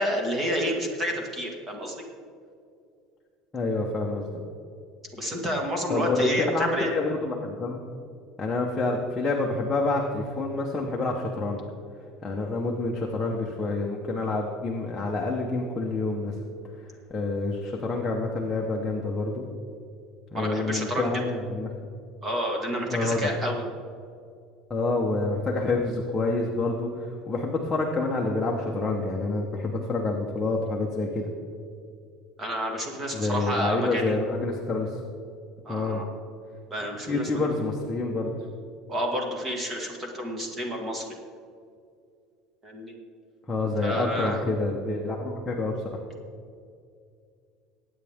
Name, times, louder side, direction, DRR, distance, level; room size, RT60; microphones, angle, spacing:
voice 1, 0.0-2.0 5.1-6.9 20.3-21.1 22.2-23.6 32.4-34.2 35.7-36.1 36.7-37.5 38.9-41.1 42.6-42.9 43.8-44.4, equal, 20° right, 2 dB, 1.8 m, -29 dB
voice 2, 3.5-4.3 5.9-7.8 8.4-11.6 12.2-16.3 17.1-19.5 20.3-21.7 22.9-23.3 24.7-31.3 33.1-35.0 35.7-36.0 37.1-38.3 43.5-45.8, left 2 dB, 10° left, -2 dB, 1.1 m, -28 dB
21.5 x 8.9 x 3.6 m, 2.3 s
cardioid pair, 170°, 0 cm